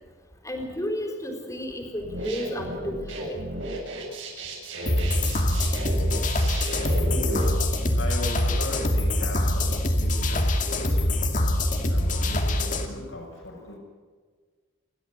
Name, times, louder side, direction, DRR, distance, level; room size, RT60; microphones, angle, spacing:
voice 1, 0.4-3.4, left 1 dB, 15° left, 3 dB, 4.1 m, -32 dB
sound 1, 2.0-7.4, right 1 dB, 70° right, 7.7 m, -34 dB
sound 2, 4.9-12.9, left 1 dB, 40° left, 2.4 m, -24 dB
voice 2, 7.0-7.5 7.9-11.4 11.9-13.8, left 1 dB, 75° left, 0 dB, 6.3 m, -38 dB
29.5 x 12.5 x 8.1 m, 1.5 s
head